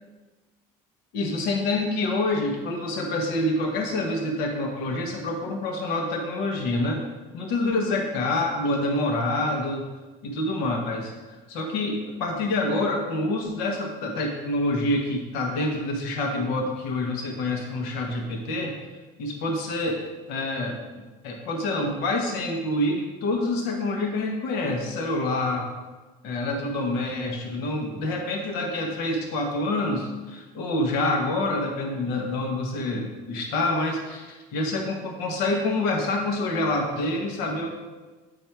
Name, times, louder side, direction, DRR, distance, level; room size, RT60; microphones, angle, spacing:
voice 1, 1.1-7.0 7.3-9.9 10.2-11.1 11.5-18.8 19.2-20.0 20.3-20.8 21.2-25.7 26.2-37.7, left 2 dB, 80° left, 2 dB, 1.1 m, -27 dB
8.3 x 4.4 x 4.5 m, 1.2 s
cardioid pair, 105°, 16 cm